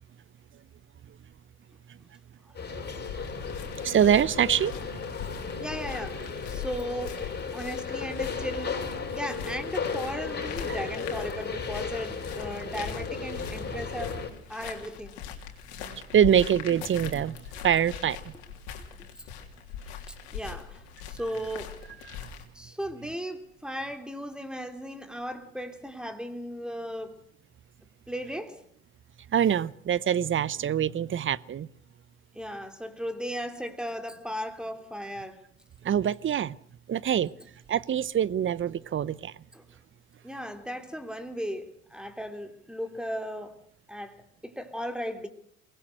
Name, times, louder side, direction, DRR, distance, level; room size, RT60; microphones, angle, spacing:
sound 1, 2.5-14.3, left 5 dB, 30° left, 6.8 m, -35 dB
sound 2, 3.0-22.4, left 8 dB, 80° left, 3.3 m, -42 dB
voice 1, 3.8-4.7 10.7-10.8 15.8-17.4 17.6-18.3 22.1-22.3 29.3-31.7 35.8-36.6 36.9-37.3 37.7-39.3, right 9 dB, 40° right, 0.8 m, -25 dB
voice 2, 5.6-7.2 7.5-8.8 9.1-14.2 14.5-15.1 19.9-20.0 20.3-21.8 22.5-27.1 28.1-28.6 32.3-35.4 39.5-39.7 40.2-43.5 43.9-44.1 44.4-45.3, equal, ahead, 3.2 m, -36 dB
23.0 x 19.5 x 6.5 m
hypercardioid pair, 65°, 32 cm